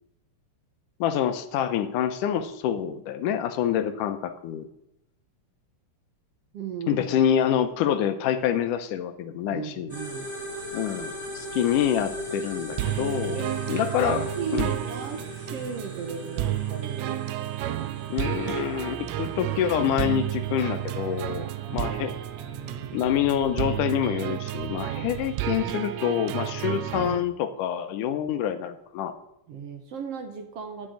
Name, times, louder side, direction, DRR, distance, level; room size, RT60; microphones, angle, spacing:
voice 1, 1.0-4.7 6.9-9.9 10.7-13.4 13.7-14.2 14.5-14.7 18.1-22.1 22.9-29.1, left 9 dB, 80° left, 9 dB, 2.4 m, -26 dB
voice 2, 6.5-7.0 9.5-10.3 13.3-13.5 13.9-17.3 17.6-17.9 21.7-22.1 22.3-23.0 29.5-30.9, right 6 dB, 60° right, 6 dB, 1.7 m, -36 dB
sound 1, 9.9-23.6, equal, 10° right, 1.5 m, -39 dB
sound 2, 12.8-27.2, right 13 dB, 80° right, 1.7 m, -31 dB
sound 3, 18.3-25.6, right 4 dB, 40° right, 2.4 m, -45 dB
9.6 x 7.5 x 9.0 m, 0.81 s
omnidirectional pair, 3.7 m